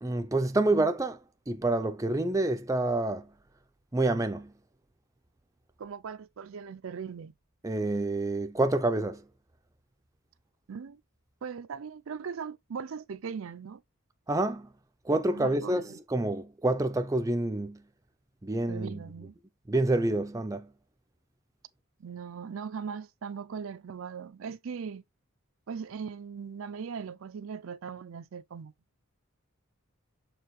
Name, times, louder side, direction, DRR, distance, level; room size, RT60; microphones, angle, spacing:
voice 1, 0.0-1.2 1.5-3.3 3.9-4.5 7.6-9.3 14.3-14.7 15.0-17.8 18.4-19.0 19.7-20.7, right 2 dB, 15° right, 0.5 m, -28 dB
voice 2, 5.8-7.3 10.7-11.0 11.4-13.8 15.3-15.8 18.7-19.3 22.0-25.0 25.7-28.7, right 6 dB, 70° right, 0.4 m, -39 dB
6.4 x 4.7 x 3.1 m
head